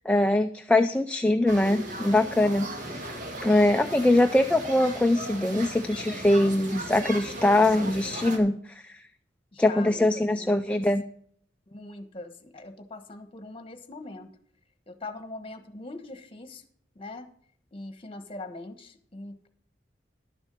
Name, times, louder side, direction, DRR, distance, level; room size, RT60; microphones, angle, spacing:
voice 1, 0.1-3.1 3.4-8.6 8.8-8.9 9.6-11.0, left 1 dB, 5° left, 6 dB, 0.4 m, -22 dB
sound 1, 1.5-8.4, right 1 dB, 45° right, 1.9 m, -37 dB
voice 2, 9.5-10.8 11.7-14.3 14.9-16.6 16.9-17.3 17.7-19.5, left 2 dB, 30° left, 9 dB, 1.2 m, -42 dB
11.5 x 7.1 x 5.2 m, 0.62 s
head